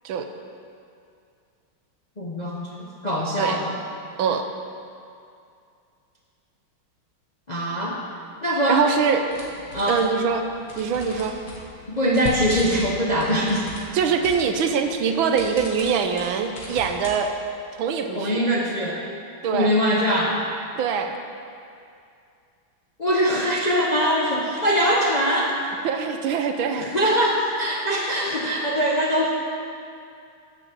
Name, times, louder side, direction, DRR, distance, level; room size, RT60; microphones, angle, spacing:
voice 1, 2.2-3.7 7.5-8.0 8.4-8.8 9.7-10.1 11.9-13.7 18.2-19.0 19.5-20.4 23.0-25.6 26.8-29.3, equal, 35° left, -3 dB, 0.6 m, -22 dB
voice 2, 8.7-9.2 9.9-10.4 10.8-11.3 13.9-17.3 17.8-18.4 19.4-19.7 20.7-21.2 25.8-26.9, right 6 dB, 75° right, 6 dB, 1.5 m, -23 dB
sound 1, 9.3-17.2, left 2 dB, 70° left, 2.7 m, -41 dB
sound 2, 12.2-14.8, left 8 dB, 85° left, 0.8 m, -36 dB
11.5 x 6.5 x 7.7 m, 2.4 s
omnidirectional pair, 2.3 m